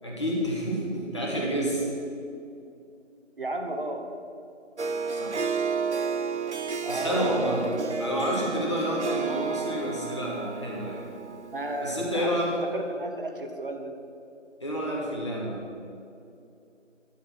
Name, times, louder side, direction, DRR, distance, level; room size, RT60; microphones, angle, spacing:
voice 1, 0.0-1.9 5.1-5.4 6.9-7.7 8.0-11.0 11.8-12.5 14.6-15.6, equal, 25° left, -4 dB, 1.6 m, -29 dB
voice 2, 3.4-4.1 6.8-7.8 11.5-12.4 12.7-13.9, right 1 dB, 45° right, 4 dB, 1.1 m, -33 dB
Harp, 4.8-12.3, right 5 dB, 65° right, 0.7 m, -32 dB
11.0 x 6.5 x 7.6 m, 2.6 s
figure-of-eight pair, 165°, 37 cm